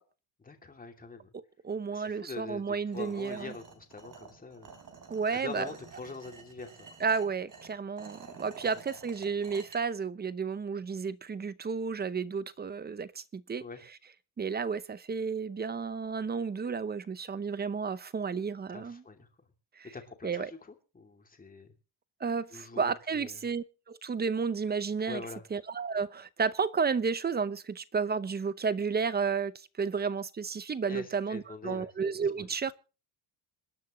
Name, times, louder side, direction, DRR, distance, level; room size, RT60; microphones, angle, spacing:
voice 1, 0.4-1.3 1.9-4.8 5.4-6.9 13.6-13.8 18.7-19.3 19.9-21.7 22.5-23.4 25.1-25.4 30.9-31.9 32.4-32.5, left 4 dB, 15° left, 2.7 m, -44 dB
voice 2, 1.6-3.5 5.1-5.7 7.0-13.7 14.4-19.0 19.8-19.9 20.2-20.5 22.2-25.3 25.5-29.5 29.8-32.7, right 5 dB, 20° right, 0.7 m, -32 dB
sound 1, 2.9-9.8, right 5 dB, 40° right, 3.9 m, -50 dB
26.5 x 10.5 x 3.1 m
cardioid pair, 145°, 49 cm